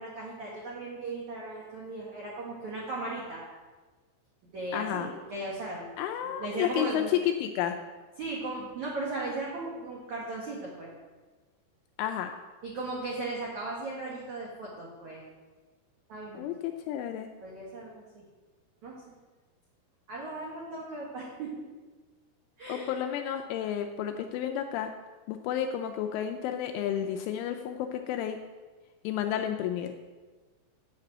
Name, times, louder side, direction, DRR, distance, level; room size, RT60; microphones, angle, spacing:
voice 1, 0.0-3.4 4.4-5.9 6.2-7.1 8.2-10.9 12.6-15.3 16.1-16.5 17.4-18.2 18.8-19.0 20.1-21.5 22.6-22.9, right 2 dB, 80° right, -4 dB, 1.7 m, -37 dB
voice 2, 4.7-5.1 6.0-7.8 12.0-12.4 16.4-17.3 22.7-24.9 25.3-28.4 29.0-30.0, left 10 dB, 85° left, 6 dB, 2.8 m, -31 dB
8.4 x 6.8 x 7.8 m, 1.3 s
omnidirectional pair, 6.0 m